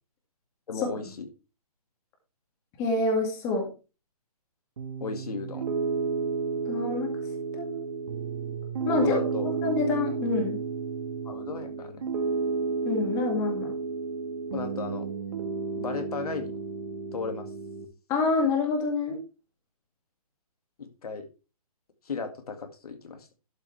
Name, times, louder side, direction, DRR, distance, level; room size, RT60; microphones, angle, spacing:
voice 1, 0.7-1.3 5.0-5.7 9.0-9.5 11.3-12.1 14.5-15.1 15.8-16.6 17.1-17.5 20.8-21.3 22.0-23.3, left 5 dB, 70° left, 7 dB, 2.1 m, -35 dB
voice 2, 2.8-3.7 6.7-7.1 7.5-7.9 8.9-10.6 12.8-13.7 18.1-19.2, left 3 dB, 15° left, 2 dB, 2.1 m, -27 dB
Piano, 4.8-17.8, right 5 dB, 60° right, 1.6 m, -32 dB
12.0 x 7.3 x 3.3 m, 0.31 s
hypercardioid pair, 165°, 20 cm